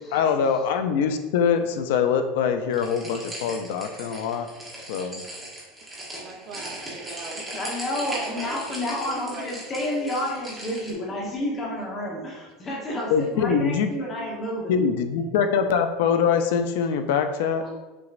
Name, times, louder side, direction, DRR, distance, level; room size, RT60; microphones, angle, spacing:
voice 1, 0.1-4.5 4.9-5.2 13.1-13.9 14.7-17.6, left 6 dB, 70° left, 8 dB, 0.4 m, -23 dB
sound 1, 2.7-10.9, right 1 dB, 10° right, 1.0 m, -38 dB
voice 2, 6.2-7.4 7.9-9.5, right 4 dB, 45° right, 2 dB, 0.8 m, -40 dB
voice 3, 7.5-14.8 17.6-17.7, left 1 dB, 20° left, -3 dB, 1.0 m, -30 dB
5.9 x 3.1 x 2.5 m, 1.2 s
supercardioid pair, 175°, 0 cm